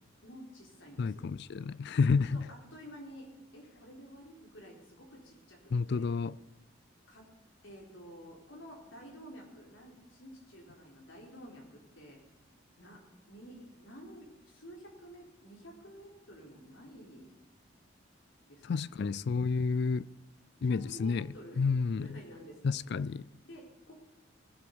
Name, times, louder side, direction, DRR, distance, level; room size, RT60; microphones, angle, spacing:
voice 1, 0.2-1.2 2.1-3.3 3.5-6.1 7.1-7.2 7.6-12.2 12.8-13.0 13.3-17.3 18.5-18.8 20.6-21.6 22.0-22.8 23.4-24.0, equal, 75° left, 4.0 m, -51 dB
voice 2, 1.0-2.5 5.7-6.4 18.6-20.1 20.6-21.3 21.6-22.2 22.6-23.2, left 4 dB, 60° left, 0.4 m, -30 dB
20.0 x 8.0 x 5.4 m
head